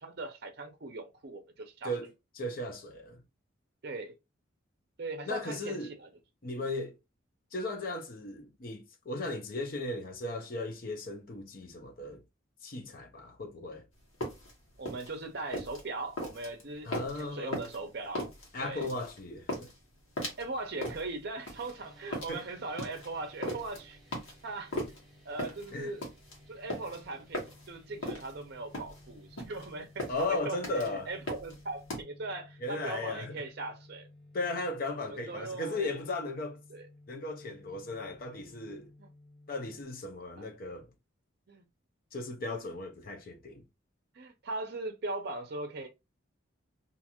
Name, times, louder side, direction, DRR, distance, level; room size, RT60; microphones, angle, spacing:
voice 1, 0.0-1.9 3.8-4.1 5.0-6.1 6.6-6.7 14.8-18.3 18.6-18.9 20.2-24.0 24.4-24.7 25.2-26.0 26.5-34.1 35.1-35.9 36.7-36.9 39.0-39.1 41.5-41.6 44.1-45.9, right 3 dB, 50° right, 0.5 m, -39 dB
voice 2, 2.4-3.2 5.2-5.9 6.4-7.0 7.5-12.2 12.6-13.8 16.9-17.6 18.5-19.7 22.3-22.4 25.7-25.9 30.1-31.1 32.6-33.4 34.3-36.6 37.1-38.9 39.5-40.9 42.1-43.6, left 2 dB, 45° left, 0.5 m, -36 dB
sound 1, 14.0-32.0, left 1 dB, 75° left, 1.2 m, -39 dB
sound 2, 21.5-39.8, left 1 dB, ahead, 1.2 m, -57 dB
2.5 x 2.4 x 2.8 m
head